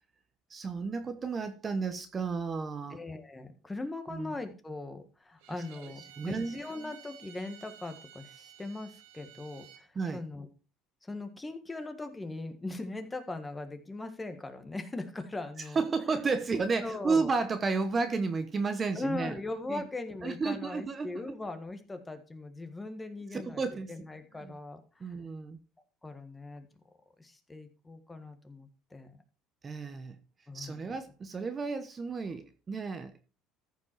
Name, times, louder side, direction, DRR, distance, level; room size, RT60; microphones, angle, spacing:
voice 1, 0.5-3.0 4.1-4.3 5.8-6.6 9.9-10.2 15.7-19.4 19.7-19.9 20.2-21.4 23.3-23.9 24.4-24.5 25.0-25.6 29.6-30.2 30.5-33.1, right 4 dB, 25° right, 1.0 m, -32 dB
voice 2, 2.9-10.5 11.0-15.8 16.8-17.3 18.9-23.6 23.9-25.1 26.0-26.7 27.2-29.2 30.5-30.8, left 2 dB, 15° left, 1.6 m, -40 dB
Bowed string instrument, 5.4-9.9, right 10 dB, 85° right, 1.7 m, -53 dB
14.0 x 5.3 x 4.6 m
cardioid pair, 115°, 0 cm